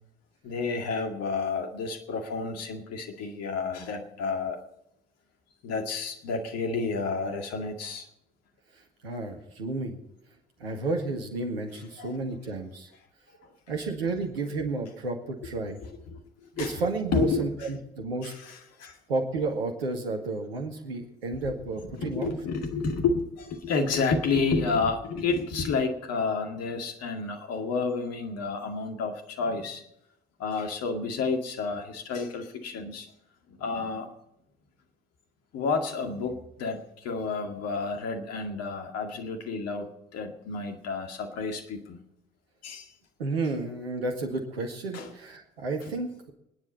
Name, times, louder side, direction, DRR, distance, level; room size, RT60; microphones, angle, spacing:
voice 1, 0.4-4.6 5.6-8.1 12.0-12.1 13.4-13.5 16.1-16.8 17.1-17.5 18.2-19.0 21.5-21.6 21.8-29.8 30.4-33.1 33.5-34.1 35.5-42.0 42.6-42.9 44.9-45.1, left 4 dB, 55° left, 5 dB, 2.2 m, -30 dB
voice 2, 9.0-10.0 10.6-12.9 13.7-15.8 16.6-18.3 19.1-22.3 43.2-46.3, right 3 dB, 80° right, 4 dB, 1.9 m, -32 dB
24.0 x 10.0 x 4.2 m, 0.83 s
figure-of-eight pair, 45°, 30 cm